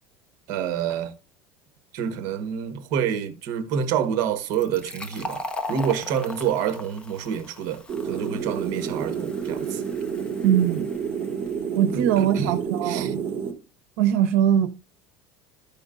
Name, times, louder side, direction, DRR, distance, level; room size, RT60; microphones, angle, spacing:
voice 1, 0.5-1.1 1.9-9.8 11.9-12.5 12.8-13.1, right 8 dB, 55° right, 1.3 m, -28 dB
Fill (with liquid), 4.4-11.8, left 2 dB, 15° left, 0.8 m, -39 dB
sound 1, 7.9-13.5, right 7 dB, 30° right, 2.7 m, -29 dB
voice 2, 10.4-10.9 11.7-13.2 14.0-14.7, right 10 dB, 85° right, 0.9 m, -21 dB
14.0 x 5.2 x 2.5 m
cardioid pair, 155°, 7 cm